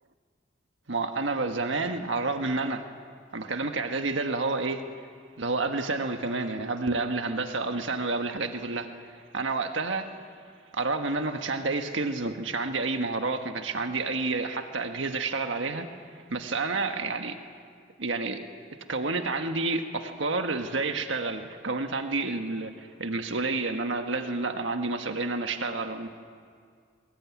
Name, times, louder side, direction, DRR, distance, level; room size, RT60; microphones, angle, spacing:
voice 1, 0.9-2.8 3.3-4.8 5.4-10.1 10.7-17.4 18.0-18.5 18.9-26.1, right 3 dB, 85° right, 6 dB, 1.5 m, -29 dB
23.5 x 20.5 x 9.5 m, 2.1 s
head